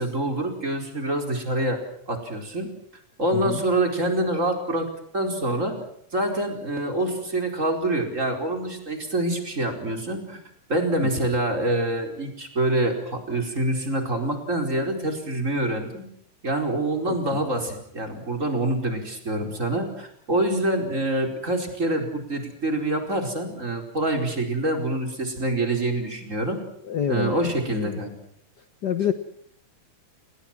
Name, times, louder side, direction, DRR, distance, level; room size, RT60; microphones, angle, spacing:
voice 1, 0.0-1.8 2.1-2.7 3.2-5.8 6.1-10.4 10.7-16.0 16.4-26.6 27.1-28.1, right 1 dB, 20° right, 4 dB, 4.8 m, -26 dB
voice 2, 26.9-28.0 28.8-29.1, left 9 dB, 80° left, 10 dB, 0.9 m, -27 dB
29.5 x 21.0 x 6.1 m, 0.70 s
omnidirectional pair, 3.7 m